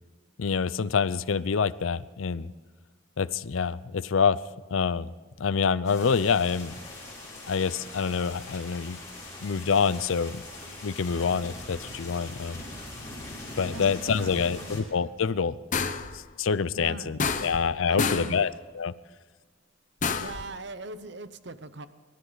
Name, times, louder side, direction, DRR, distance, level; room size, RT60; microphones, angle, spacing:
voice 1, 0.4-2.5 3.2-4.4 4.7-6.7 7.5-9.0 9.4-10.4 10.8-12.6 13.6-15.6 16.1-18.9, left 5 dB, 75° left, 17 dB, 0.5 m, -26 dB
sound 1, 5.8-14.8, left 2 dB, 15° left, 6.5 m, -42 dB
voice 2, 13.7-14.7 16.8-17.5 17.8-18.5 20.2-21.9, right 2 dB, 55° right, 12 dB, 0.8 m, -41 dB
sound 2, 15.7-16.2 17.2-17.7 18.0-18.4 20.0-20.5, left 5 dB, 40° left, 0.8 m, -28 dB
26.5 x 13.0 x 4.0 m, 1.4 s
head